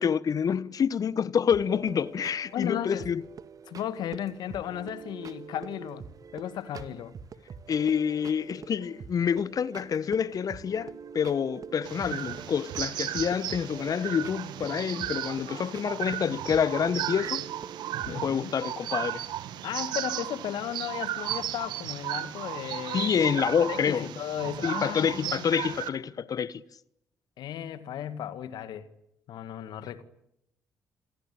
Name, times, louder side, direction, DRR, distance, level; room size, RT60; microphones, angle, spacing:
voice 1, 0.0-3.2 7.7-17.4 18.1-19.2 22.9-24.1 24.6-26.6, left 7 dB, 50° left, 1.2 m, -27 dB
sound 1, 1.5-18.4, right 6 dB, 50° right, 2.1 m, -45 dB
voice 2, 2.5-3.1 3.7-6.0 6.3-7.1 18.1-18.5 19.6-25.8 27.4-28.9 29.3-30.0, left 10 dB, 65° left, 2.0 m, -35 dB
sound 2, 11.8-25.9, right 12 dB, 70° right, 1.8 m, -35 dB
28.5 x 22.5 x 8.8 m
hypercardioid pair, 45°, 8 cm